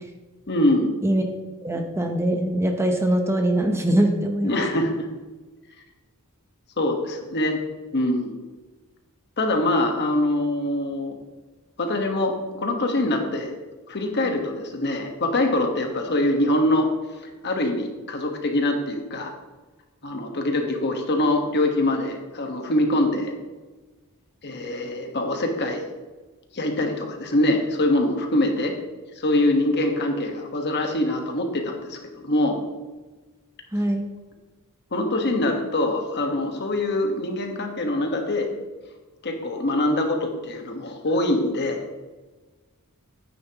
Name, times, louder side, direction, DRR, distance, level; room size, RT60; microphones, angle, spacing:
voice 1, 0.5-0.9 4.4-5.1 6.8-7.6 7.9-8.4 9.4-11.1 11.8-13.5 13.9-16.9 17.4-19.3 20.0-23.3 24.4-25.8 26.5-28.7 29.2-32.6 34.9-38.5 39.2-41.8, left 1 dB, 50° left, 3 dB, 1.4 m, -24 dB
voice 2, 1.6-4.6 33.7-34.0, right 1 dB, 10° right, 4 dB, 0.8 m, -22 dB
10.5 x 9.4 x 3.0 m, 1.3 s
head